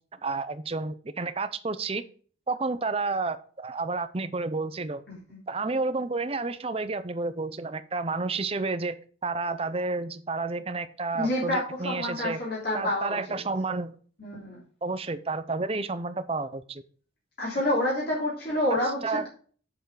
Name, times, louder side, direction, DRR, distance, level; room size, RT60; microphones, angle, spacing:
voice 1, 0.1-2.0 2.5-5.0 5.5-9.0 9.2-12.4 12.7-13.9 14.8-16.8 18.7-18.8 19.0-19.3, right 3 dB, 30° right, 12 dB, 0.6 m, -30 dB
voice 2, 11.1-13.4 14.2-14.6 17.4-19.0, left 1 dB, 50° left, -5 dB, 3.4 m, -28 dB
8.1 x 7.1 x 4.9 m, 0.44 s
head